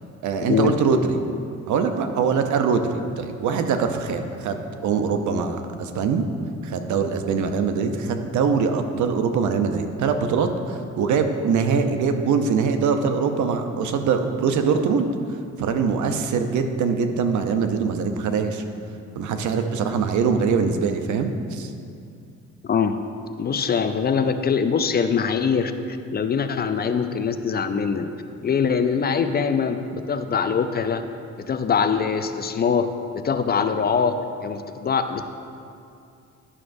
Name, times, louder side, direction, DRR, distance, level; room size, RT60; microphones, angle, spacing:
voice 1, 0.2-1.2 1.7-6.3 6.6-15.1 15.6-18.6 19.1-21.7, right 5 dB, 75° right, 7 dB, 0.7 m, -23 dB
voice 2, 22.6-23.0 23.4-28.1 28.4-31.0 31.5-32.9 33.1-35.2, left 6 dB, 35° left, 9 dB, 0.4 m, -23 dB
11.0 x 6.0 x 2.6 m, 2.5 s
cardioid pair, 90°, 30 cm